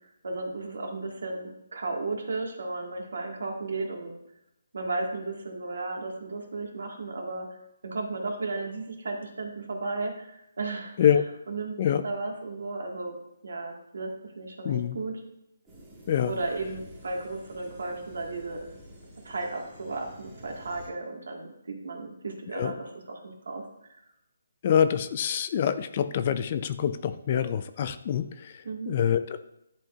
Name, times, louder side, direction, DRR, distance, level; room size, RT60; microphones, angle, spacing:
voice 1, 0.2-4.1 4.7-7.5 7.8-11.1 11.5-11.8 12.0-13.2 13.4-15.2 16.2-18.7 19.2-23.6 23.9-24.0 28.6-28.9, right 3 dB, 75° right, 2 dB, 1.6 m, -34 dB
voice 2, 14.6-15.0 16.1-16.4 22.6-22.7 24.6-29.4, left 9 dB, 35° left, 11 dB, 0.4 m, -26 dB
sound 1, 15.7-20.9, equal, 10° right, 1.8 m, -49 dB
10.5 x 4.4 x 2.4 m, 0.86 s
hypercardioid pair, 160°, 0 cm